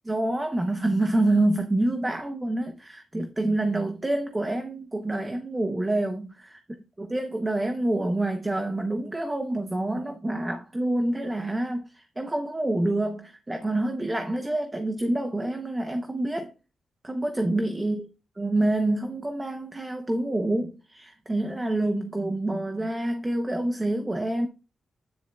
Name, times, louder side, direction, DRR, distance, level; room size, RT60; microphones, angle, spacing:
voice 1, 0.1-6.6 7.0-16.5 17.0-18.1 18.4-24.5, right 1 dB, 15° right, 0.7 m, -27 dB
9.7 x 6.8 x 2.3 m
wide cardioid pair, 130°, 0 cm